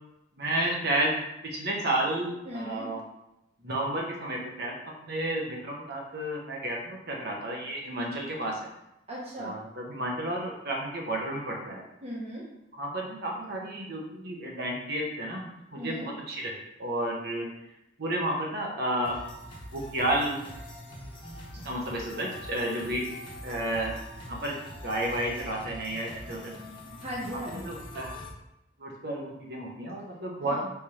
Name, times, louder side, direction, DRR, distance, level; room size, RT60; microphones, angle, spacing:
voice 1, 0.4-1.1 1.5-3.0 3.6-4.7 5.0-8.6 9.4-11.8 12.8-15.5 15.8-16.5 16.8-17.5 18.0-19.1 19.7-20.4 21.6-23.0 23.4-23.9 24.2-24.5 24.8-26.6 27.6-28.2 28.8-30.6, right 1 dB, 55° right, -1 dB, 1.0 m, -31 dB
voice 2, 2.4-2.9 9.1-9.6 12.0-12.5 15.8-16.1 27.0-27.8 30.4-30.7, equal, 35° right, -5 dB, 0.8 m, -37 dB
sound 1, 19.0-28.3, left 1 dB, 25° left, 0.9 m, -43 dB
4.8 x 3.4 x 2.9 m, 0.85 s
head